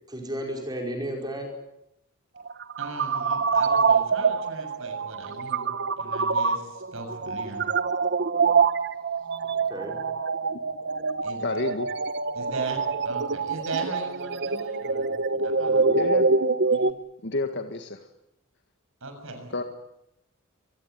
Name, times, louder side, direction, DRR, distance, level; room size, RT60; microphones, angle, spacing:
voice 1, 0.1-1.5 9.5-10.0 15.3-16.1, equal, 20° right, 2 dB, 5.2 m, -34 dB
sound 1, 2.4-16.9, right 4 dB, 55° right, 1.1 m, -25 dB
voice 2, 2.8-7.7 11.2-11.4 12.3-15.1 15.4-15.8 16.7-17.0 19.0-19.6, right 3 dB, 70° right, 6 dB, 7.0 m, -38 dB
voice 3, 11.4-11.9 15.9-16.3 17.2-18.0 19.5-19.6, left 2 dB, 55° left, 6 dB, 1.9 m, -29 dB
24.5 x 21.0 x 9.3 m, 0.82 s
head